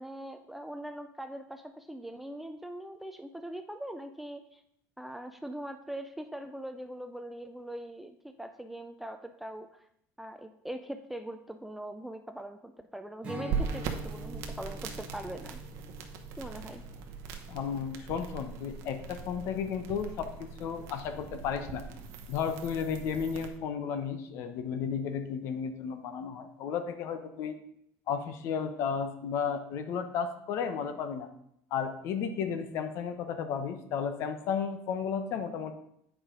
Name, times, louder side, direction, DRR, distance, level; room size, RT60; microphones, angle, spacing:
voice 1, 0.0-4.6 5.0-9.8 10.2-15.6 16.4-16.8, right 1 dB, 5° right, 7 dB, 0.3 m, -41 dB
Strum, 13.2-18.7, equal, 20° right, 1.5 m, -46 dB
sound 1, 13.5-23.5, right 6 dB, 55° right, 1.0 m, -40 dB
voice 2, 17.5-21.8 22.3-27.6 28.1-31.3 31.7-35.7, left 7 dB, 50° left, 8 dB, 0.9 m, -33 dB
8.8 x 4.9 x 5.1 m, 0.75 s
cardioid pair, 165°, 6 cm